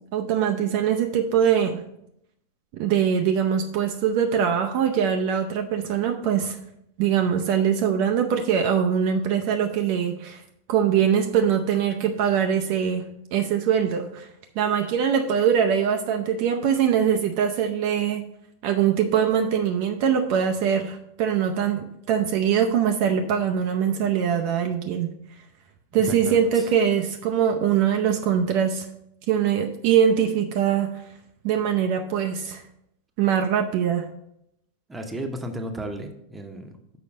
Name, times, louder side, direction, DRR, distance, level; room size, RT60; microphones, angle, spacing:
voice 1, 0.1-1.8 2.7-6.6 7.0-10.4 10.7-13.0 13.3-14.3 14.6-18.2 18.6-25.1 25.9-28.9 29.3-30.9 31.4-32.6 33.2-34.1, right 8 dB, 45° right, 4 dB, 0.5 m, -22 dB
voice 2, 25.9-26.7 34.9-37.0, right 1 dB, 10° right, 5 dB, 0.9 m, -34 dB
6.8 x 4.9 x 5.0 m, 0.77 s
figure-of-eight pair, 90°, 0 cm